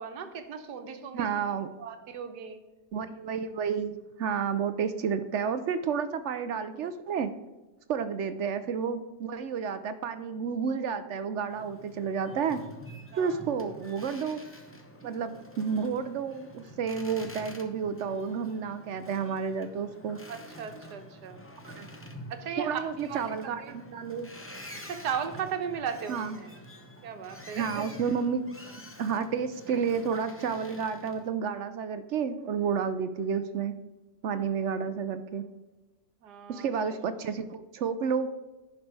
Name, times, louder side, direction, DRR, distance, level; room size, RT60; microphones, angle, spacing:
voice 1, 0.0-1.5 1.8-2.6 13.1-13.4 20.3-21.4 22.3-23.3 23.6-23.7 24.8-26.5 27.0-27.9 36.2-37.0, right 7 dB, 90° right, 7 dB, 1.5 m, -37 dB
voice 2, 1.1-1.7 2.9-7.3 7.9-12.6 13.2-14.4 15.0-20.2 21.6-21.9 22.6-24.3 26.1-26.4 27.5-28.5 28.8-33.7 34.2-35.4 36.5-38.3, right 6 dB, 65° right, 11 dB, 0.7 m, -31 dB
Boat Water vehicle, 11.5-31.3, equal, 15° left, 0.6 m, -48 dB
10.5 x 5.4 x 4.7 m, 1.1 s
omnidirectional pair, 1.7 m